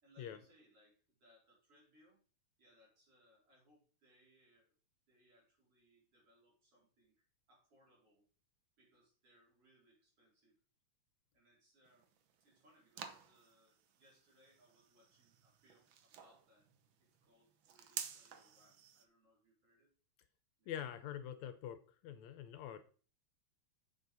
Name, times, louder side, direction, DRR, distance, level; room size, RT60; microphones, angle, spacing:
voice 1, 0.0-2.2 2.6-4.8 5.1-8.3 8.8-10.6 11.3-12.1 12.4-16.7 17.0-19.9 20.6-20.7, equal, 50° right, -3 dB, 5.5 m, -70 dB
sound 1, 11.8-19.0, right 8 dB, 70° right, 1.2 m, -51 dB
voice 2, 20.7-21.8 22.0-22.8, left 10 dB, 75° left, 11 dB, 2.0 m, -45 dB
7.9 x 7.0 x 5.3 m, 0.40 s
omnidirectional pair, 3.3 m